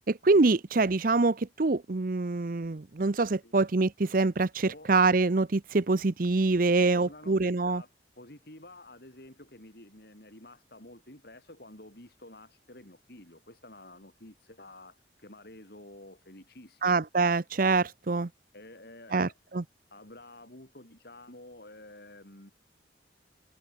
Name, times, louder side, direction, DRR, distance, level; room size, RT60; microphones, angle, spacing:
voice 1, 0.1-7.8 16.8-18.3 19.1-19.6, right 3 dB, 50° right, 0.7 m, -25 dB
voice 2, 7.0-7.9 8.2-17.0 18.5-19.3 19.9-22.5, left 1 dB, 60° left, 4.6 m, -50 dB
head